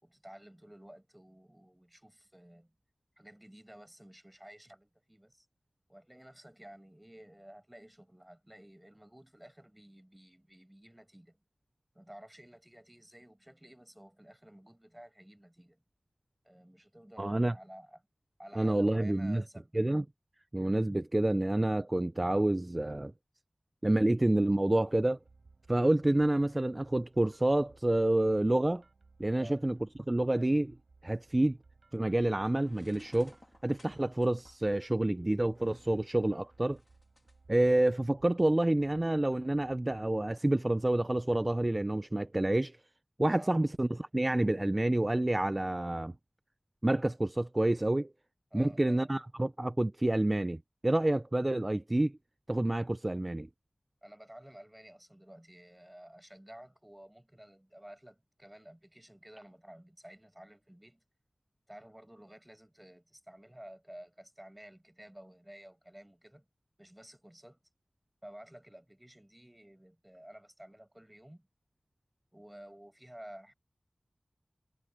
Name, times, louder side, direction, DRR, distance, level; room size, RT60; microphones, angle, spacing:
voice 1, 0.0-2.7 3.2-5.5 5.9-11.4 11.9-15.8 16.4-18.0 18.4-19.8 29.4-29.6 43.3-43.6 48.5-49.1 54.0-61.0 61.7-66.4 66.8-67.6 68.2-71.5 72.3-73.5, right 1 dB, 10° right, 6.5 m, -53 dB
voice 2, 17.2-17.5 18.6-19.4 19.7-20.0 20.5-23.1 23.8-25.2 25.7-28.8 29.2-29.8 30.1-30.8 31.0-31.6 31.9-33.3 33.6-36.8 37.5-42.8 43.2-46.1 46.8-48.1 48.5-52.2 52.5-53.5, right 1 dB, 25° right, 0.4 m, -28 dB
sound 1, 24.9-40.4, right 3 dB, 80° right, 6.8 m, -62 dB
sound 2, 32.4-37.4, left 2 dB, 35° left, 2.7 m, -62 dB
wide cardioid pair, 75°, 0 cm